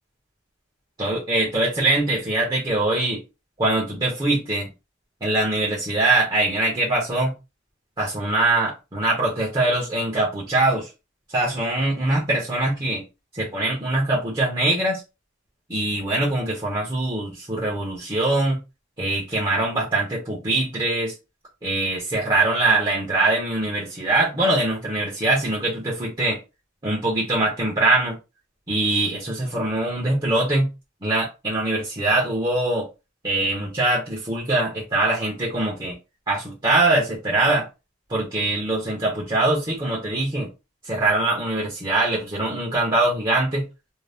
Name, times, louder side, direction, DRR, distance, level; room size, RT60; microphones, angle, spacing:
voice 1, 1.0-3.2 3.6-4.7 5.2-7.3 8.0-10.9 11.3-13.0 13.3-15.0 15.7-18.6 19.0-21.1 21.6-26.4 26.8-28.2 28.7-30.7 31.0-32.9 33.2-35.9 36.3-37.7 38.1-40.5 40.9-43.6, right 2 dB, 25° right, -4 dB, 0.8 m, -22 dB
2.6 x 2.1 x 3.3 m, 0.27 s
head